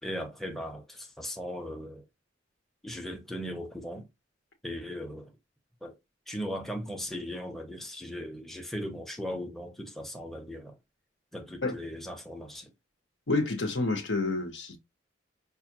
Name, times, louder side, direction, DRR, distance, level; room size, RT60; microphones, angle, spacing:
voice 1, 0.0-2.0 2.8-4.1 4.6-5.3 5.8-6.0 6.3-10.8 11.3-12.7, equal, ahead, 0.6 m, -38 dB
voice 2, 13.3-14.8, left 2 dB, 75° left, 1.1 m, -29 dB
5.5 x 2.5 x 2.7 m
head